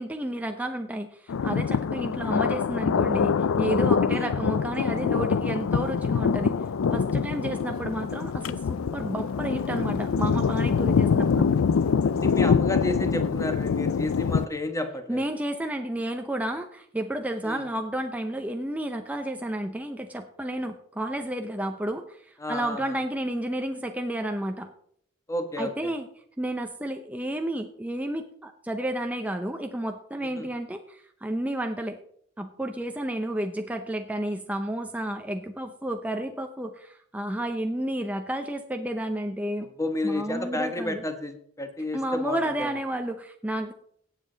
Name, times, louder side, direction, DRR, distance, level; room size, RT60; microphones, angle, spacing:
voice 1, 0.0-6.6 6.9-11.5 15.1-24.7 25.6-26.1 26.4-32.0 32.4-39.7 40.0-41.0 41.9-43.7, right 1 dB, 5° right, 5 dB, 0.6 m, -31 dB
Thunder, 1.3-14.5, left 6 dB, 80° left, 0.4 m, -25 dB
voice 2, 12.0-15.2 17.4-17.6 22.4-23.0 25.3-25.9 30.4-30.5 39.8-42.7, left 2 dB, 15° left, 7 dB, 1.2 m, -31 dB
17.0 x 7.5 x 3.9 m, 0.64 s
head